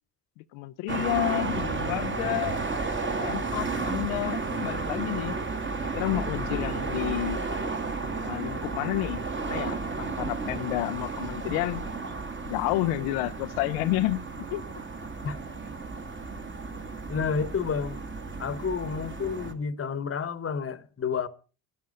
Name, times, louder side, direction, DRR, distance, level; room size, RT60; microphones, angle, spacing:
voice 1, 0.4-2.6 3.2-5.4 5.8-7.4 8.2-11.9 12.5-14.2 14.5-14.6, left 17 dB, 90° left, 0.6 m, -30 dB
sound 1, 0.9-19.5, right 3 dB, 25° right, 1.8 m, -33 dB
voice 2, 17.1-18.0 18.4-21.3, left 6 dB, 30° left, 1.1 m, -30 dB
12.5 x 10.5 x 5.3 m
supercardioid pair, 80°, 43 cm